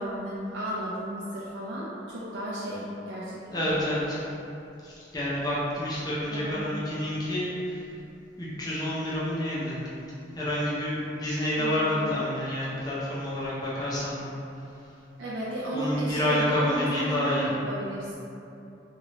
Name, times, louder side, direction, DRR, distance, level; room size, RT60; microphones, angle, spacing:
voice 1, 0.0-3.7 6.3-6.7 11.6-12.1 15.2-18.1, right 1 dB, 90° right, -7 dB, 0.4 m, -34 dB
voice 2, 3.5-4.2 4.8-7.8 8.4-9.8 10.3-14.3 15.7-17.5, left 1 dB, 20° left, -8 dB, 0.5 m, -28 dB
3.1 x 2.5 x 3.0 m, 2.8 s
head